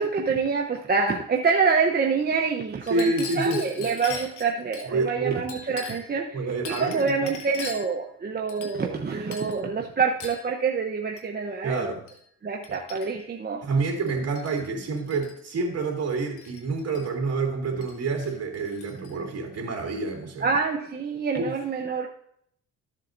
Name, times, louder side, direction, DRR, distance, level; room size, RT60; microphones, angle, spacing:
voice 1, 0.0-11.9 12.4-13.6 20.4-22.1, right 5 dB, 30° right, 2 dB, 0.9 m, -26 dB
Chink clink, 2.8-4.9 5.5-6.2 6.6-8.0 8.5-9.0 9.3-9.6 10.2-10.5 11.2-11.3 12.1-12.2 12.6-13.3 14.1-14.7 15.0-15.3 16.4-17.0 17.8-17.9 18.2-19.1, left 4 dB, 90° left, 1.7 m, -40 dB
voice 2, 2.9-3.6 4.1-4.2 4.9-5.4 6.3-7.4 11.6-12.0 13.6-20.5 21.3-21.5, right 3 dB, 55° right, 1 dB, 3.2 m, -28 dB
13.5 x 7.6 x 2.7 m, 0.68 s
cardioid pair, 90°, 30 cm